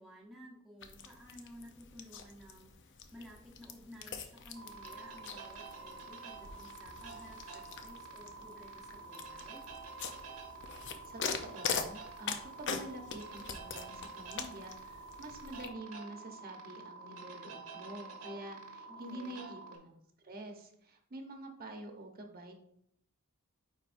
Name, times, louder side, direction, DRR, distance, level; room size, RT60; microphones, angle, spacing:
voice 1, 0.0-9.6 18.9-19.5, equal, ahead, -4 dB, 0.9 m, -54 dB
sound 1, 0.8-15.7, left 6 dB, 55° left, 0.6 m, -43 dB
sound 2, 4.5-19.8, right 4 dB, 80° right, 1.4 m, -49 dB
voice 2, 10.7-22.6, right 1 dB, 45° right, 3 dB, 1.0 m, -47 dB
9.4 x 4.4 x 2.6 m, 0.71 s
head